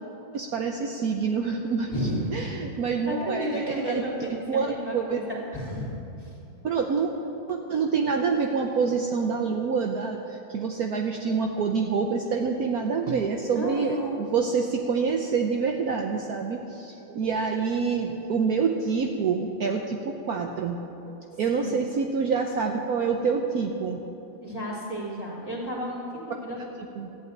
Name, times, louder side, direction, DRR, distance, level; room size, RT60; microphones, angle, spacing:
voice 1, 0.3-1.9 2.3-4.0 4.5-5.2 6.6-7.1 7.5-20.8 21.3-24.0 26.3-26.4 27.0-27.1, right 5 dB, 60° right, 2 dB, 1.2 m, -27 dB
voice 2, 1.9-2.5 3.0-5.9 6.2-6.3 13.5-14.1 21.6-21.7 24.4-26.6, equal, 10° left, -4 dB, 2.9 m, -32 dB
14.0 x 8.6 x 9.3 m, 2.8 s
omnidirectional pair, 2.0 m